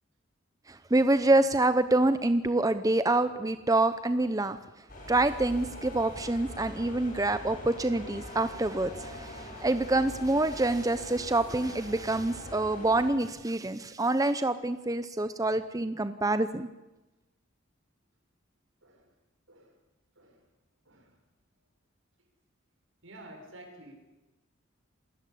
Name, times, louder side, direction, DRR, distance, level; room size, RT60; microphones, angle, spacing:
voice 1, 0.7-4.6 5.1-16.7, right 2 dB, 15° right, 11 dB, 0.7 m, -26 dB
sound 1, 4.9-13.1, left 1 dB, 45° left, 7.2 m, -43 dB
voice 2, 23.0-23.9, right 1 dB, 80° right, 3 dB, 6.6 m, -51 dB
28.0 x 17.0 x 8.5 m, 1.0 s
head